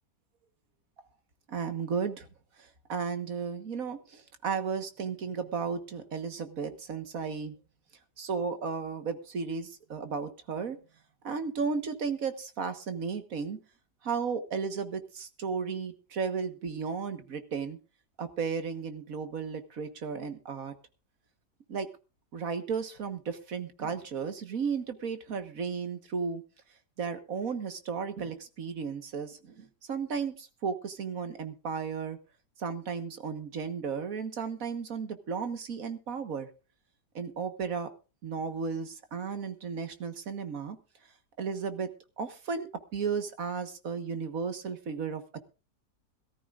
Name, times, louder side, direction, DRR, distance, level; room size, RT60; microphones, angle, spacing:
voice 1, 1.5-2.3 2.6-7.6 8.2-10.8 11.2-13.6 14.0-17.8 18.2-20.7 21.7-21.9 22.3-26.4 27.0-32.2 32.6-36.5 37.2-37.9 38.2-40.8 41.4-41.9 42.2-45.2, right 5 dB, 55° right, 9 dB, 1.8 m, -34 dB
22.0 x 14.0 x 2.5 m, 0.32 s
omnidirectional pair, 1.8 m